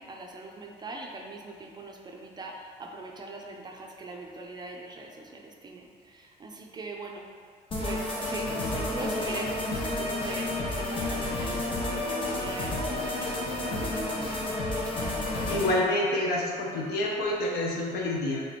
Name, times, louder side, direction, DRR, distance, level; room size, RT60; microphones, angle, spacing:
voice 1, 0.0-7.3 7.8-14.3, right 2 dB, 25° right, 1 dB, 0.4 m, -41 dB
sound 1, 7.7-15.7, left 2 dB, 30° left, 0.9 m, -31 dB
voice 2, 15.5-18.4, left 1 dB, 70° left, -2 dB, 0.8 m, -27 dB
3.2 x 3.0 x 4.1 m, 2.1 s
cardioid pair, 110°, 17 cm